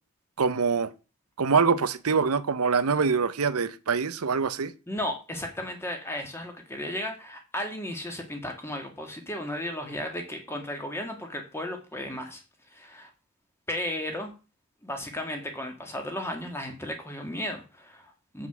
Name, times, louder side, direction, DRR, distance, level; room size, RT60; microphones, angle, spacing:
voice 1, 0.4-0.9 1.4-4.7, right 5 dB, 85° right, 0.7 m, -24 dB
voice 2, 4.9-12.4 12.7-13.1 13.7-14.3 14.8-18.5, left 1 dB, 10° left, 1.8 m, -34 dB
8.0 x 5.7 x 6.1 m
head